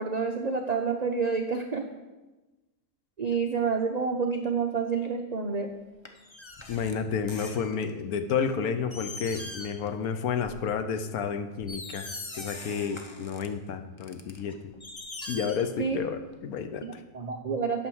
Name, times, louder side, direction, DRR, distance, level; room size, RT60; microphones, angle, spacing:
voice 1, 0.0-1.8 3.2-5.7 15.8-16.0 16.8-17.9, right 5 dB, 70° right, 3 dB, 0.3 m, -28 dB
sound 1, 6.0-8.0 8.5-8.6 8.9-9.9 10.2-10.5 11.1-11.2 11.6-13.5 14.0-16.1 16.3-16.4, left 2 dB, 35° left, 0.5 m, -41 dB
voice 2, 6.7-12.1 12.4-14.7 15.3-17.0, left 6 dB, 70° left, 8 dB, 1.1 m, -31 dB
9.1 x 6.2 x 6.2 m, 1.1 s
omnidirectional pair, 1.7 m